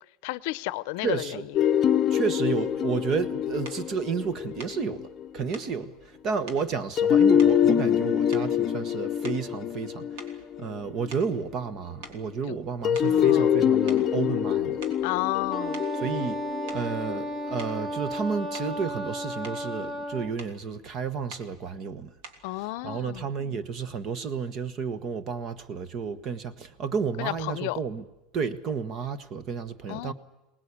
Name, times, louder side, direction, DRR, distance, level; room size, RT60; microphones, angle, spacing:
voice 1, 0.2-1.4 12.5-12.6 13.0-13.5 15.0-15.8 22.4-23.2 27.2-27.8 29.9-30.1, left 19 dB, 65° left, 0.7 m, -32 dB
voice 2, 1.0-1.5 2.1-5.1 5.3-10.3 10.6-14.8 16.0-16.4 16.7-22.1 22.8-28.0 28.3-30.1, right 5 dB, 35° right, 1.3 m, -31 dB
sound 1, 1.5-5.4 7.0-11.4 12.8-18.0, left 9 dB, 25° left, 0.8 m, -25 dB
sound 2, 3.6-3.9 4.6-4.8 5.5-5.8 6.5-6.7 7.4-8.0 8.3-8.7 9.2-9.6 10.2-11.7 12.0-12.2 12.9-13.2 13.9-14.1 14.6-15.1 15.7-15.9 16.7-16.9 17.6-17.8 18.5-18.8 19.2-19.7 20.4-20.6 21.3-21.5 22.2-22.5, right 3 dB, 70° right, 3.2 m, -46 dB
Wind instrument woodwind instrument, 15.5-20.4, equal, 5° right, 1.5 m, -33 dB
23.5 x 19.5 x 8.5 m
supercardioid pair, 165°, 0 cm